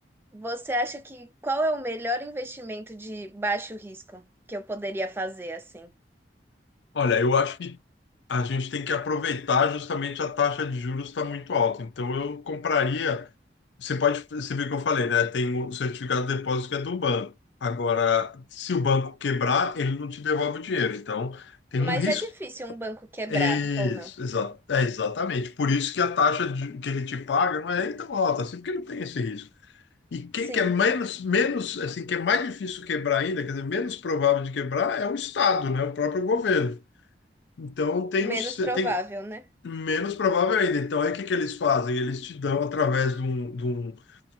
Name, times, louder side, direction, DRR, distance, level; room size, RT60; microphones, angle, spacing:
voice 1, 0.3-4.2 4.5-5.9 21.7-24.1 30.5-30.7 38.2-39.5, right 1 dB, 15° right, 0.5 m, -31 dB
voice 2, 6.9-7.8 8.3-13.3 13.8-17.3 17.6-22.2 23.3-29.5 30.1-36.8 37.6-39.0 39.6-44.0, left 5 dB, 80° left, 0.5 m, -26 dB
2.8 x 2.4 x 2.4 m
head